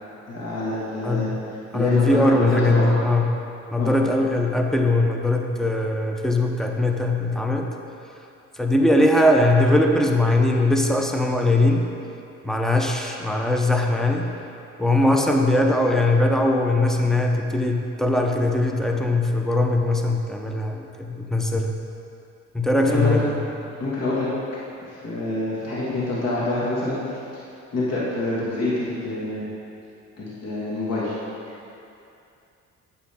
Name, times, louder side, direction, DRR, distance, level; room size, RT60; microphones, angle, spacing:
voice 1, 0.3-1.3 1.7-2.9 3.8-3.9 22.8-23.2 23.8-24.3 24.9-27.2 27.7-29.5 30.2-31.1, left 2 dB, 55° left, -8 dB, 2.0 m, -26 dB
voice 2, 1.0-1.4 1.7-3.3 3.7-7.7 8.5-11.8 12.4-14.3 14.8-21.7 22.5-23.4, left 2 dB, ahead, 2 dB, 0.7 m, -20 dB
9.0 x 7.1 x 3.6 m, 2.6 s
cardioid pair, 90°, 30 cm